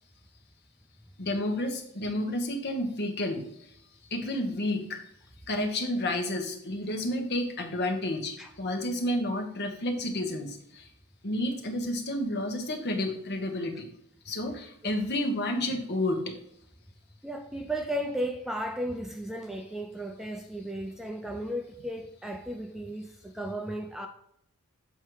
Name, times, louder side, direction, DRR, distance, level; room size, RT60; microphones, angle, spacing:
voice 1, 1.2-3.7 4.1-5.0 5.5-10.9 11.2-13.9 14.2-16.4, left 1 dB, 50° left, 1.3 m, -31 dB
voice 2, 17.2-24.1, right 1 dB, ahead, 0.4 m, -35 dB
7.6 x 4.3 x 4.7 m
head